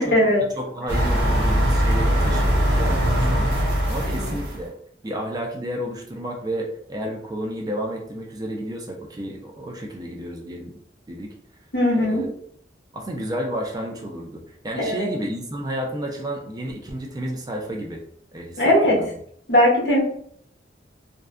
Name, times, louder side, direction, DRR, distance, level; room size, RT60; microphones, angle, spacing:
voice 1, 0.0-0.4 4.0-4.4 11.7-12.2 14.8-15.1 18.6-19.0 19.5-20.0, left 1 dB, 65° left, -2 dB, 0.8 m, -19 dB
voice 2, 0.6-4.7 5.0-10.8 11.1-11.3 11.9-12.3 12.9-18.0 18.3-19.1, right 1 dB, 20° right, 1 dB, 0.3 m, -31 dB
sound 1, 0.9-4.7, equal, 65° right, 0.8 m, -21 dB
2.5 x 2.1 x 2.3 m, 0.65 s
head